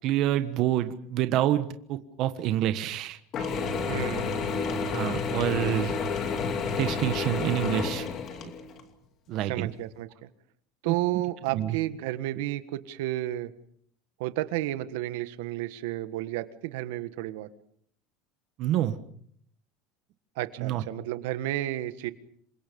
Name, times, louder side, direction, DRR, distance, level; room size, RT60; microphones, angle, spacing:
voice 1, 0.0-3.2 4.9-6.0 6.8-8.1 8.4-8.5 9.3-9.7 10.8-11.0 11.5-11.8 18.6-19.0 20.6-20.8, right 12 dB, 45° right, 9 dB, 1.3 m, -27 dB
Mechanisms / Drill, 3.3-8.8, left 5 dB, 30° left, 2.6 m, -30 dB
voice 2, 3.9-4.5 9.5-10.1 10.8-13.5 14.2-17.5 20.4-22.1, right 15 dB, 80° right, 11 dB, 1.5 m, -31 dB
28.0 x 24.5 x 5.4 m, 0.65 s
cardioid pair, 170°, 0 cm